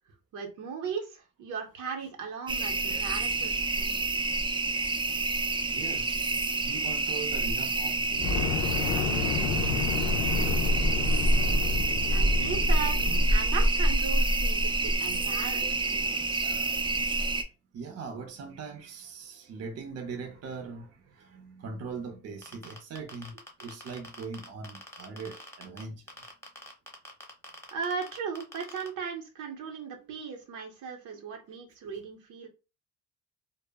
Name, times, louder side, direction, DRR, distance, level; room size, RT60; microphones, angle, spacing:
voice 1, 0.3-4.0 12.0-16.4 27.7-32.5, right 6 dB, 85° right, 0.8 m, -37 dB
sound 1, 2.5-17.4, right 2 dB, 15° right, 0.4 m, -27 dB
voice 2, 5.7-11.1 13.0-13.2 17.7-26.0, right 4 dB, 55° right, 0.6 m, -41 dB
Fire, 8.1-13.4, left 6 dB, 85° left, 0.5 m, -31 dB
sound 2, 22.4-25.8 26.1-28.9, left 1 dB, 10° left, 0.9 m, -45 dB
2.1 x 2.0 x 3.4 m
cardioid pair, 90°, 30 cm